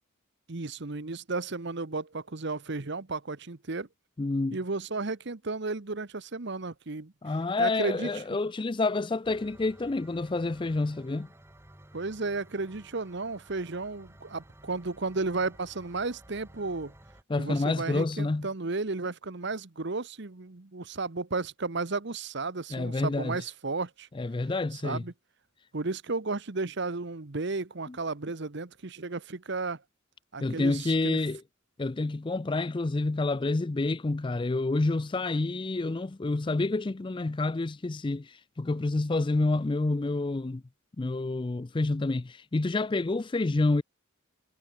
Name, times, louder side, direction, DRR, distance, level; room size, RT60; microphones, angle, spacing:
voice 1, 0.5-3.9 4.5-7.1 7.6-8.2 11.9-16.9 17.4-24.1 24.7-25.1 25.7-29.8 30.3-31.2, right 3 dB, 55° right, 1.1 m, -33 dB
voice 2, 4.2-4.6 7.2-11.3 17.3-18.5 22.7-23.4 24.2-25.0 27.9-28.0 30.4-31.4 31.8-40.6 41.0-43.8, left 2 dB, 25° left, 0.4 m, -28 dB
sound 1, 9.2-17.2, right 1 dB, 10° right, 1.7 m, -54 dB
head